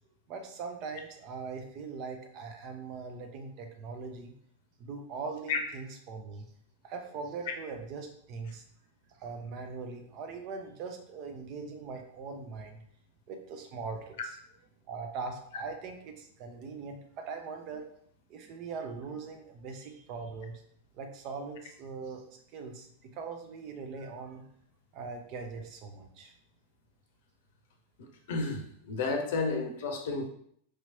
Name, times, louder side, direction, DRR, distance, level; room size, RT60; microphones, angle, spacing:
voice 1, 0.3-4.3 4.8-6.5 6.8-8.6 9.2-12.8 13.3-14.4 14.9-17.9 18.3-20.6 20.9-22.2 22.5-24.4 24.9-26.3, right 4 dB, 40° right, 5 dB, 0.6 m, -41 dB
voice 2, 28.0-30.3, left 4 dB, 55° left, 4 dB, 0.7 m, -32 dB
4.8 x 2.9 x 2.8 m, 0.65 s
figure-of-eight pair, 90°, 0 cm